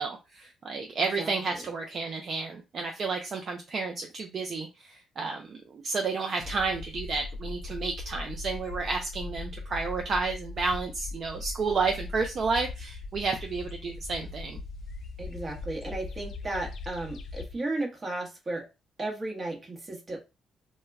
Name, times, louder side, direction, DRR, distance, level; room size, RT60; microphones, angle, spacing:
voice 1, 0.0-14.6, right 4 dB, 50° right, 0.4 m, -31 dB
voice 2, 1.2-1.6 15.2-18.6 19.0-20.2, right 2 dB, 30° right, 0.9 m, -34 dB
sound 1, 6.4-17.6, left 3 dB, 60° left, 0.3 m, -40 dB
2.2 x 2.1 x 3.3 m
cardioid pair, 90°, 0 cm